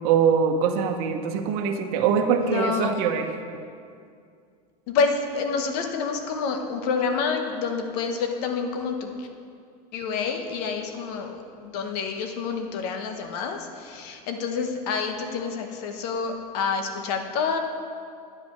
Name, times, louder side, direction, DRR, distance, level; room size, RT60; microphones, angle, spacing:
voice 1, 0.0-3.3, right 7 dB, 65° right, 6 dB, 1.0 m, -23 dB
voice 2, 2.4-2.9 4.9-9.3 9.9-17.6, left 5 dB, 70° left, 5 dB, 1.1 m, -28 dB
9.5 x 5.2 x 6.9 m, 2.3 s
supercardioid pair, 115°, 21 cm